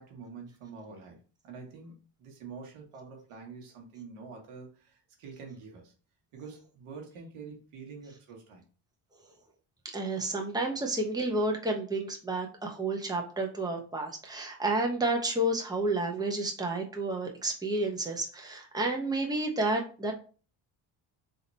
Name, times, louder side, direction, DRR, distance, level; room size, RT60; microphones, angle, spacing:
voice 1, 0.0-5.9 6.3-8.6, right 5 dB, 90° right, 1 dB, 1.4 m, -46 dB
voice 2, 9.9-20.1, right 2 dB, 10° right, 1 dB, 1.0 m, -30 dB
3.6 x 2.9 x 4.1 m, 0.38 s
cardioid pair, 85°, 49 cm